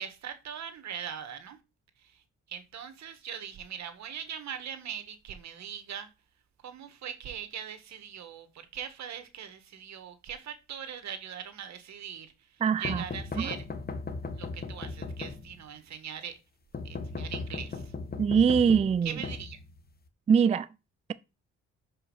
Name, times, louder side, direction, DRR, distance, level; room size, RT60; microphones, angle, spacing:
voice 1, 0.0-1.6 2.0-6.1 6.6-13.6 14.4-16.4 16.8-17.9 19.0-19.6, right 8 dB, 65° right, 1.6 m, -41 dB
voice 2, 12.6-13.0 13.4-13.5 18.2-19.2 20.3-20.7, right 7 dB, 20° right, 0.3 m, -23 dB
sound 1, 12.8-15.8 16.7-20.1, left 3 dB, 30° left, 1.3 m, -37 dB
6.1 x 5.5 x 5.6 m
cardioid pair, 90°, 30 cm